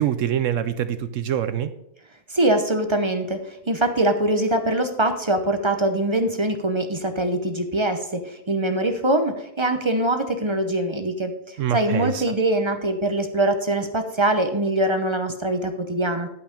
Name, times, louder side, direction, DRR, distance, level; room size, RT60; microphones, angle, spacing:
voice 1, 0.0-1.7 11.6-12.3, right 10 dB, 65° right, 12 dB, 0.8 m, -25 dB
voice 2, 2.3-16.3, right 1 dB, 30° right, 7 dB, 0.5 m, -23 dB
11.0 x 5.7 x 5.1 m, 0.84 s
omnidirectional pair, 1.6 m